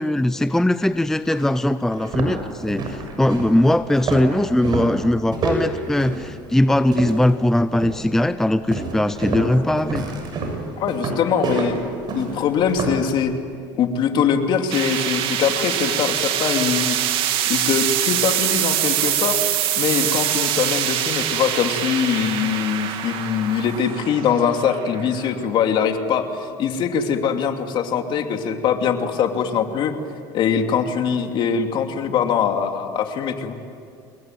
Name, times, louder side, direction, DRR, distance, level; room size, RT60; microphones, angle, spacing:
voice 1, 0.0-10.1, left 1 dB, 5° left, 12 dB, 0.6 m, -20 dB
sound 1, 1.3-1.4 1.9-7.4 7.7-8.1 8.7-13.1, right 3 dB, 45° right, 6.8 m, -28 dB
voice 2, 10.8-11.8 12.1-13.3 13.8-17.0 17.5-19.4 19.8-29.9 30.3-33.5, left 7 dB, 55° left, 5 dB, 2.8 m, -22 dB
sound 2, 14.7-25.8, right 11 dB, 60° right, 2.5 m, -24 dB
28.0 x 21.5 x 9.2 m, 2.4 s
supercardioid pair, 110°, 10 cm